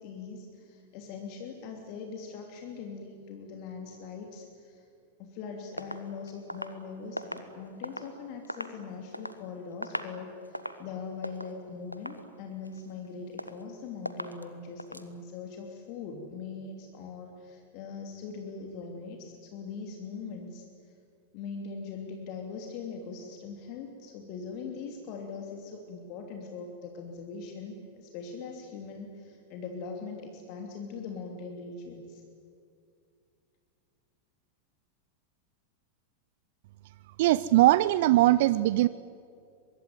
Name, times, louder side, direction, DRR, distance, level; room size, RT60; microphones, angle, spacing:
voice 1, 0.0-4.8 5.2-20.7 21.3-32.2, left 5 dB, 45° left, 2 dB, 3.0 m, -41 dB
sound 1, 5.8-8.1 8.4-9.4 9.7-10.2 10.4-10.9 11.2-11.5 11.9-12.3 12.6-13.1 13.4-13.7 14.1-14.5 14.8-15.1, equal, 90° left, 1.3 m, -39 dB
voice 2, 37.2-38.9, right 16 dB, 50° right, 17 dB, 0.5 m, -21 dB
24.0 x 22.5 x 9.5 m, 2.4 s
figure-of-eight pair, 90°, 0 cm